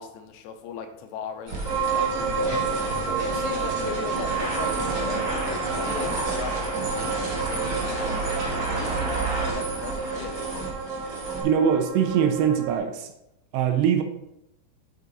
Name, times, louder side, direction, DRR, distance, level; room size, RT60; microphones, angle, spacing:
voice 1, 0.0-2.6 3.2-8.4 8.7-10.4, left 6 dB, 80° left, 6 dB, 2.9 m, -38 dB
sound 1, 1.5-11.4, right 2 dB, 40° right, 1.8 m, -30 dB
sound 2, 1.6-12.8, right 5 dB, 20° right, 2.5 m, -30 dB
voice 2, 11.4-13.1 13.5-14.0, right 8 dB, 80° right, 6 dB, 3.1 m, -22 dB
8.1 x 6.2 x 4.1 m, 0.86 s
omnidirectional pair, 5.0 m